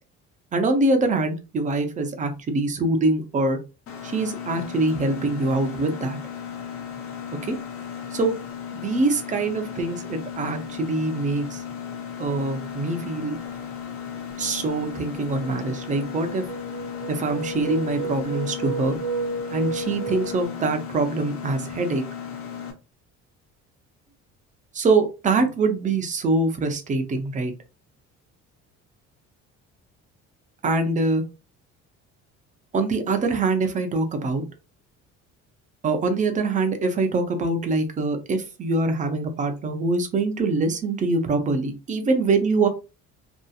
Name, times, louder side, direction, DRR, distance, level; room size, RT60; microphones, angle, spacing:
voice 1, 0.5-3.6 4.0-6.2 7.4-7.6 8.1-8.3 8.7-11.6 12.2-13.3 14.4-16.4 17.1-19.0 19.5-22.0 24.7-27.5 30.6-31.2 32.7-34.4 35.8-42.7, right 3 dB, 25° right, 6 dB, 0.5 m, -24 dB
Mechanisms, 3.9-22.7, left 8 dB, 50° left, 0.7 m, -36 dB
sound 1, 13.4-13.7 14.2-20.4, right 3 dB, 75° right, 0.6 m, -33 dB
2.7 x 2.4 x 2.3 m, 0.30 s
cardioid pair, 150°, 30 cm